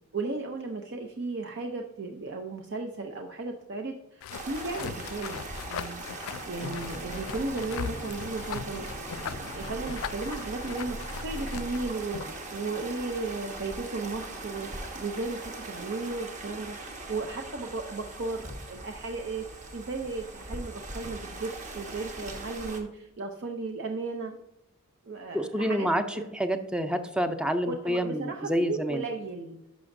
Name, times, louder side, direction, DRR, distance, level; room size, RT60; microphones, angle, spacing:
voice 1, 0.1-6.0 6.5-8.9 9.2-16.8 17.1-19.5 19.7-24.3 25.0-25.9 26.1-26.3 27.7-29.6, right 3 dB, 55° right, 3 dB, 0.6 m, -35 dB
sound 1, 4.2-12.4, left 7 dB, 75° left, 0.3 m, -40 dB
sound 2, 4.3-22.8, right 2 dB, 35° right, 1.2 m, -40 dB
sound 3, 6.7-11.9, equal, 85° right, 0.9 m, -42 dB
voice 2, 25.3-29.0, equal, 5° right, 8 dB, 0.5 m, -28 dB
11.0 x 5.9 x 2.6 m, 0.89 s
head